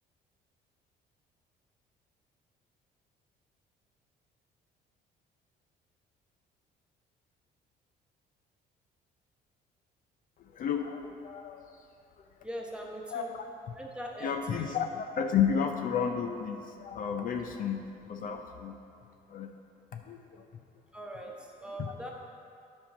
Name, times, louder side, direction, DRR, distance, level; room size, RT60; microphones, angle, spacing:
voice 1, 10.4-11.8 13.1-13.4 14.2-18.8 19.3-19.5 19.9-20.4 21.8-21.9, left 7 dB, 55° left, 5 dB, 0.6 m, -32 dB
voice 2, 12.4-13.3 13.8-14.7 20.9-22.1, equal, 5° right, -1 dB, 1.2 m, -41 dB
10.0 x 5.4 x 5.0 m, 2.4 s
cardioid pair, 110°, 17 cm